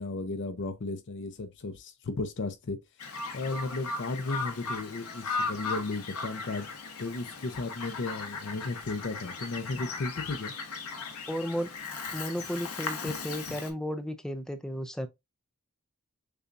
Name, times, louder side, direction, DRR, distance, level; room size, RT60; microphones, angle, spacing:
voice 1, 0.0-2.8 3.3-6.7 7.0-10.5, left 3 dB, 55° left, 0.6 m, -34 dB
Bird vocalization bird call bird song, 3.0-13.7, left 4 dB, 85° left, 1.0 m, -37 dB
voice 2, 11.3-11.7 12.1-15.1, equal, 5° left, 0.4 m, -34 dB
6.7 x 2.3 x 2.5 m
head